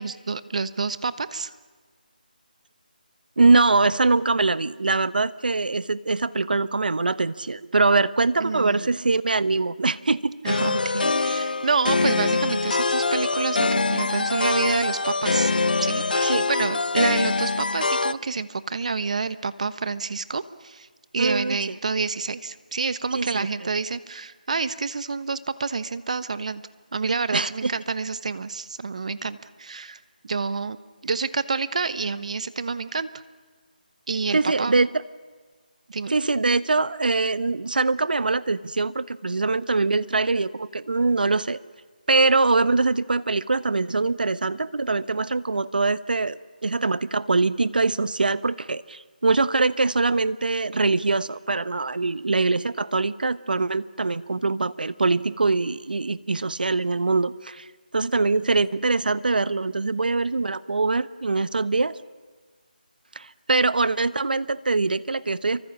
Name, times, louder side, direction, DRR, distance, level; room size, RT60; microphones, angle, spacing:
voice 1, 0.0-1.5 8.4-8.9 10.4-15.5 15.8-20.9 21.1-26.6 26.9-30.0 30.2-30.8 31.0-33.1 34.1-34.8 35.9-36.1, right 4 dB, 45° right, 14 dB, 1.1 m, -28 dB
voice 2, 3.4-10.4 16.2-16.5 21.2-21.7 23.1-23.5 27.3-27.7 34.3-34.9 36.1-41.6 42.1-57.7 57.9-62.0 63.1-65.7, right 3 dB, 70° right, 16 dB, 1.0 m, -23 dB
sound 1, 10.5-18.1, left 3 dB, 70° left, 0.8 m, -24 dB
28.5 x 24.0 x 7.3 m, 1.5 s
figure-of-eight pair, 170°, 5 cm